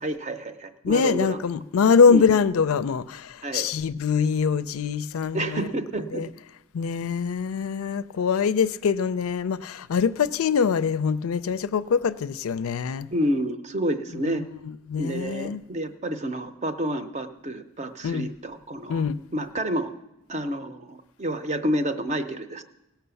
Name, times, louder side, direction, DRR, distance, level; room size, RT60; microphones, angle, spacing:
voice 1, 0.0-1.4 2.1-2.3 3.4-3.7 5.3-6.2 13.1-14.4 15.0-19.0 19.3-19.9 20.3-22.6, right 1 dB, 35° right, 0.6 m, -29 dB
voice 2, 0.8-5.7 6.1-6.3 6.7-13.1 14.9-15.6 18.0-18.3 18.9-19.2, left 6 dB, 85° left, 0.4 m, -23 dB
17.0 x 5.8 x 6.9 m
head